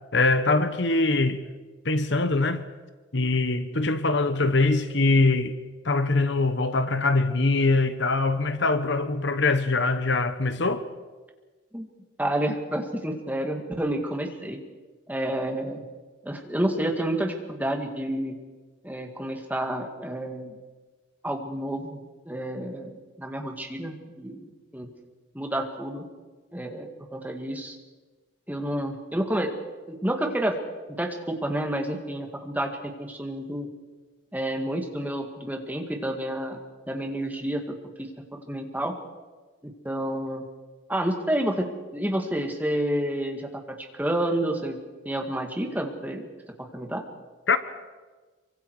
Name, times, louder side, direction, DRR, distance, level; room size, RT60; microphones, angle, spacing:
voice 1, 0.1-1.4 1.8-2.6 3.1-5.6 5.8-10.9 47.5-47.6, left 3 dB, 60° left, 1.1 m, -23 dB
voice 2, 12.2-14.6 15.1-15.8 16.2-18.4 18.8-20.6 21.2-22.0 22.3-24.9 25.3-26.0 26.5-27.8 28.5-29.5 29.9-30.6 30.9-33.7 34.3-36.6 36.9-37.6 38.0-38.9 39.6-40.4 40.9-44.8 45.1-46.3 46.6-47.0, right 1 dB, 10° right, 2.1 m, -29 dB
26.5 x 24.5 x 4.9 m
head